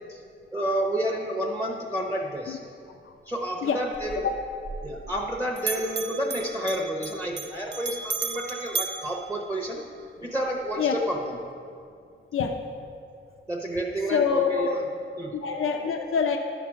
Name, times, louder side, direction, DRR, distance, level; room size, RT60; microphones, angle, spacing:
voice 1, 0.5-2.6 3.3-4.3 4.8-9.8 10.2-11.2 13.5-14.8 15.2-15.3, right 1 dB, 15° right, 0 dB, 0.8 m, -30 dB
Bell, 3.9-5.3 5.6-10.1, right 5 dB, 60° right, 0.5 m, -35 dB
voice 2, 14.1-14.8 15.3-16.4, left 6 dB, 90° left, 5 dB, 0.6 m, -25 dB
11.0 x 5.9 x 6.1 m, 2.4 s
wide cardioid pair, 135°, 21 cm